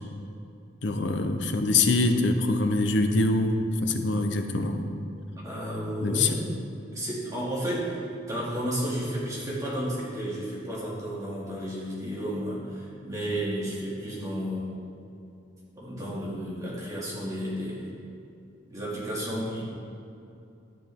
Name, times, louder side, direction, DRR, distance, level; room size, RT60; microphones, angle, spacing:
voice 1, 0.8-5.0 6.0-6.4, left 2 dB, 65° left, 6 dB, 0.7 m, -24 dB
voice 2, 5.4-6.4 6.9-14.7 15.8-17.9 18.7-19.6, equal, 20° right, -7 dB, 2.4 m, -32 dB
12.0 x 8.1 x 3.6 m, 2.7 s
head